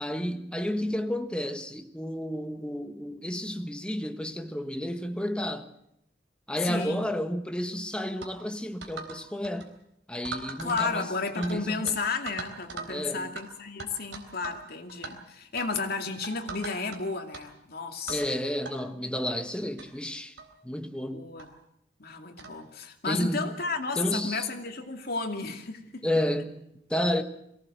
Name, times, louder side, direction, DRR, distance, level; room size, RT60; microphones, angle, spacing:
voice 1, 0.0-5.7 6.5-9.7 10.1-11.1 11.4-11.9 12.9-13.3 18.1-20.3 20.6-21.2 23.1-23.5 24.0-24.5 26.0-27.2, equal, 5° left, 1.4 m, -31 dB
voice 2, 6.6-7.1 10.6-18.2 21.1-21.5 22.0-26.1, left 4 dB, 55° left, 2.5 m, -33 dB
sound 1, 8.2-8.4 8.8-9.2 9.4-9.7 10.2-11.6 11.9-12.0 12.3-12.9 13.4-13.5 13.8-14.6 14.9-15.1 15.6-15.7 16.2-17.0 17.3-17.4 18.1-18.3 18.6-18.7 19.5-19.6 19.8-19.9 20.4-20.5 21.4-21.5 22.4-22.6, right 4 dB, 70° right, 3.8 m, -39 dB
23.0 x 18.0 x 7.8 m
head